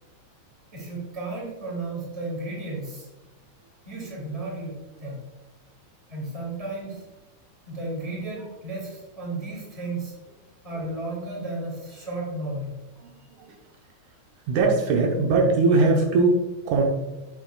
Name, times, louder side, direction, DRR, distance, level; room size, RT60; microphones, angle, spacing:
voice 1, 0.7-3.1 3.9-5.2 6.1-7.1 7.7-10.1 10.6-12.8, right 2 dB, 10° right, -4 dB, 2.1 m, -33 dB
voice 2, 13.0-13.6 14.5-16.8, right 3 dB, 75° right, 0 dB, 2.3 m, -21 dB
7.7 x 7.6 x 2.3 m, 1.1 s
omnidirectional pair, 3.5 m